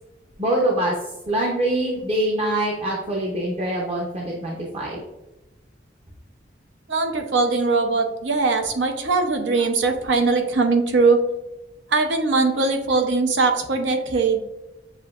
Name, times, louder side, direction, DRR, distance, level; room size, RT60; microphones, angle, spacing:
voice 1, 0.4-0.9 1.3-5.0, right 1 dB, 35° right, -3 dB, 0.6 m, -24 dB
voice 2, 6.9-11.2 11.9-14.4, right 3 dB, 80° right, 4 dB, 0.7 m, -20 dB
7.2 x 2.7 x 2.4 m, 1.0 s
head